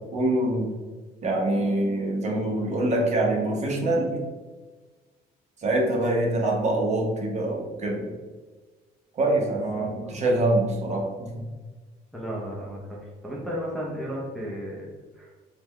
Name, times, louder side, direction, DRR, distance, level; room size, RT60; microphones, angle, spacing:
voice 1, 0.1-0.7 1.2-4.2 5.6-8.1 9.1-11.4, right 1 dB, 40° right, -1 dB, 1.0 m, -25 dB
voice 2, 12.1-14.9 15.2-15.3, equal, ahead, -5 dB, 0.7 m, -34 dB
3.8 x 2.3 x 3.1 m, 1.4 s
cardioid pair, 110°, 17 cm